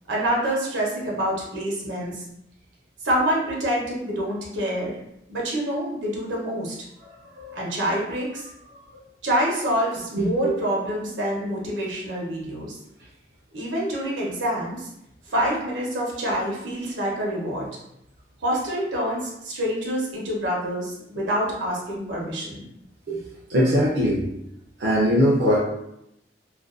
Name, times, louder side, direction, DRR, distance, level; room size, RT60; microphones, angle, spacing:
voice 1, 0.1-2.2 3.0-5.0 5.3-6.7 7.5-8.5 9.2-12.8 13.5-14.9 15.3-17.7 18.4-22.7, equal, 90° right, -3 dB, 0.8 m, -26 dB
voice 2, 10.1-10.6 23.1-23.2 23.5-24.3 24.8-25.6, equal, 65° right, -5 dB, 0.5 m, -21 dB
2.5 x 2.1 x 2.4 m, 0.81 s
head